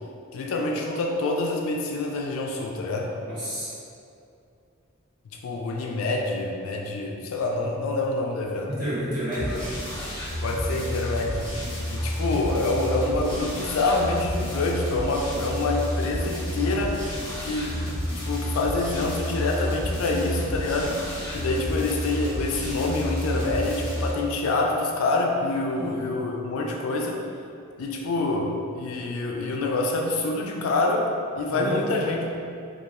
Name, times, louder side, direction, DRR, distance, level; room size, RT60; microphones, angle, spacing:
voice 1, 0.3-3.1 5.2-8.7 10.4-11.5 11.9-17.1 17.4-18.0 18.3-21.0 21.3-27.2 27.8-31.1 31.3-32.4, left 2 dB, 80° left, 0 dB, 0.3 m, -26 dB
voice 2, 3.2-3.7 8.7-9.7 25.8-25.9 31.5-32.0, equal, 40° right, -13 dB, 1.3 m, -30 dB
sound 1, 9.3-24.1, equal, 25° left, 0.5 m, -30 dB
2.3 x 2.2 x 2.8 m, 2.5 s
head